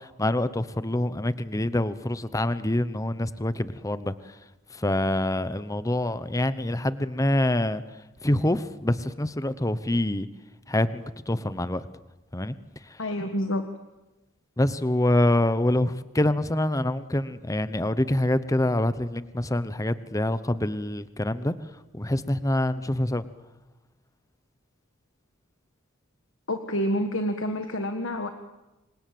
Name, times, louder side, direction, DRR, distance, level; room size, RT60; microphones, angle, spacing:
voice 1, 0.0-4.4 4.7-7.8 8.2-10.3 10.7-11.8 12.3-12.5 12.9-13.0 14.6-21.5 21.9-23.2, left 1 dB, 15° left, 14 dB, 0.9 m, -26 dB
voice 2, 13.0-13.7 26.5-28.3, equal, 60° left, 6 dB, 1.7 m, -28 dB
27.0 x 25.0 x 7.8 m, 1.1 s
head